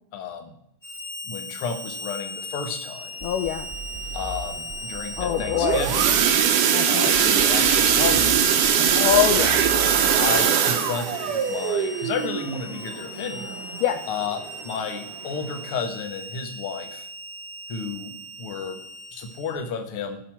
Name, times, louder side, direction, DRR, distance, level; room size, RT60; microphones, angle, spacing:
voice 1, 0.1-0.5 1.2-3.1 4.1-6.1 6.9-9.1 10.2-13.5 14.1-17.0 17.7-18.1 18.4-18.8 19.1-20.2, left 6 dB, 60° left, 5 dB, 1.5 m, -32 dB
Harmonica, 0.8-19.6, equal, ahead, 1.6 m, -38 dB
voice 2, 3.2-3.7 5.2-5.9 6.7-7.3 8.9-9.7 13.8-14.0, left 11 dB, 85° left, 7 dB, 1.8 m, -24 dB
sound 1, 3.2-6.5 7.1-10.5, right 2 dB, 40° right, 0.7 m, -38 dB
sound 2, 5.3-14.0 14.4-14.7 15.0-15.1 15.6-15.7, right 8 dB, 70° right, 2.3 m, -21 dB
17.0 x 5.9 x 4.6 m, 0.75 s
omnidirectional pair, 4.5 m